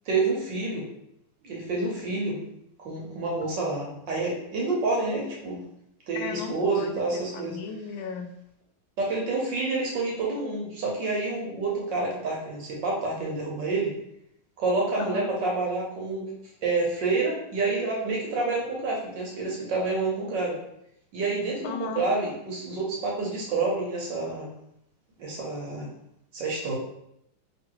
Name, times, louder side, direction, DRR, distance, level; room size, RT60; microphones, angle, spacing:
voice 1, 0.1-0.8 1.4-2.4 2.8-5.6 6.1-7.6 9.0-13.9 14.6-16.3 16.6-20.6 21.1-24.5 25.2-25.9 26.3-26.8, right 3 dB, 65° right, -2 dB, 1.5 m, -28 dB
voice 2, 6.1-8.3 15.0-15.3 21.6-22.1, left 6 dB, 75° left, 5 dB, 1.1 m, -36 dB
3.0 x 3.0 x 4.6 m, 0.79 s
omnidirectional pair, 2.3 m